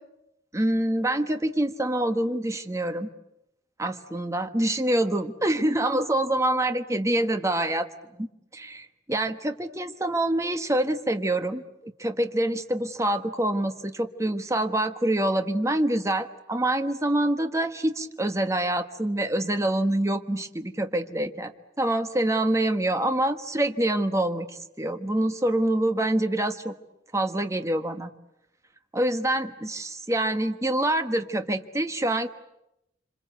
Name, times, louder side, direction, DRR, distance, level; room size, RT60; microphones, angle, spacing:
voice 1, 0.5-3.1 3.8-26.7 27.1-28.1 28.9-32.3, right 1 dB, 15° right, 8 dB, 1.3 m, -26 dB
26.5 x 26.0 x 8.1 m, 0.85 s
head